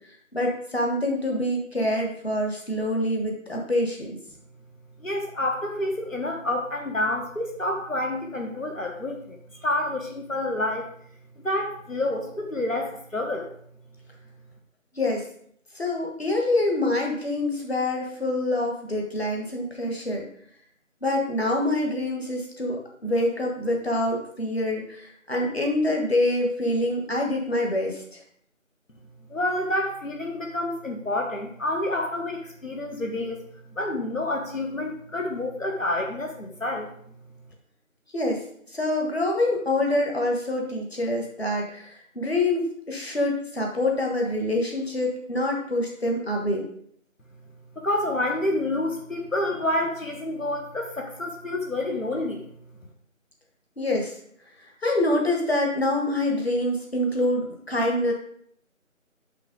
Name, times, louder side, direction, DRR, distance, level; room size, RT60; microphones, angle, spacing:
voice 1, 0.3-4.2 14.9-15.2 15.7-20.3 21.0-28.0 38.1-38.4 38.7-46.7 53.8-54.1 54.8-58.1, left 1 dB, 50° left, 0 dB, 1.5 m, -26 dB
voice 2, 5.0-10.9 11.4-13.5 29.3-33.4 33.7-36.9 47.8-52.4, left 1 dB, 70° left, 1 dB, 1.3 m, -28 dB
6.7 x 5.9 x 3.7 m, 0.65 s
figure-of-eight pair, 175°, 40 cm